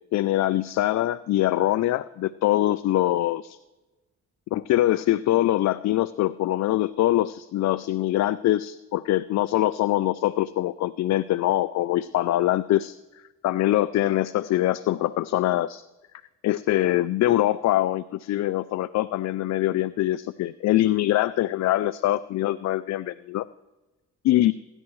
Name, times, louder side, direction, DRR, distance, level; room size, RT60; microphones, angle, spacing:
voice 1, 0.1-3.6 4.5-13.0 13.4-15.8 16.4-23.5 24.2-24.5, left 14 dB, 60° left, 14 dB, 0.4 m, -23 dB
24.5 x 11.0 x 3.2 m, 1.1 s
cardioid pair, 90°, 30 cm